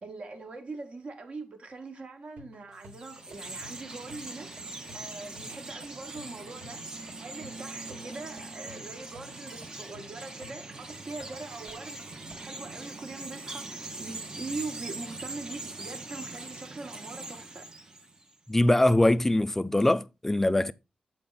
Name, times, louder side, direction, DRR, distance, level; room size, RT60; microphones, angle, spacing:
voice 1, 0.0-4.5 4.9-6.8 7.2-17.7, right 3 dB, 50° right, 1.2 m, -42 dB
sound 1, 2.4-12.4, left 1 dB, 70° right, 1.3 m, -55 dB
Chirp tweet, 2.7-18.3, right 2 dB, 25° right, 0.7 m, -42 dB
voice 2, 18.5-20.7, left 1 dB, 10° left, 0.3 m, -23 dB
7.5 x 4.3 x 3.9 m
wide cardioid pair, 115°, 3 cm